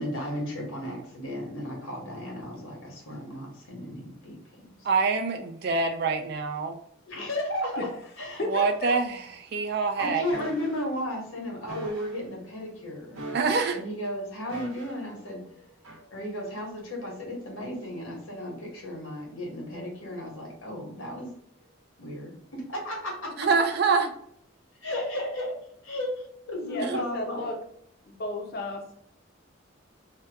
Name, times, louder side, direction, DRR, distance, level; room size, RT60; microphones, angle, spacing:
voice 1, 0.0-4.4 7.1-7.9 8.2-8.4 10.0-13.2 13.7-15.4 16.1-21.3 22.0-23.3 24.8-25.5 25.8-27.5, left 1 dB, 80° left, -1 dB, 1.2 m, -34 dB
voice 2, 4.8-6.8 8.4-10.2 13.3-13.8 23.4-24.1 26.8-27.0, right 4 dB, 50° right, 6 dB, 0.4 m, -25 dB
voice 3, 8.4-9.0 15.6-15.7 26.6-27.6 28.1-28.9, left 2 dB, 50° left, 2 dB, 0.6 m, -34 dB
sound 1, 10.3-10.8 11.7-12.2 13.1-13.8 14.5-15.1 15.8-16.0, right 1 dB, 85° right, 0.9 m, -40 dB
2.8 x 2.2 x 3.4 m, 0.70 s
head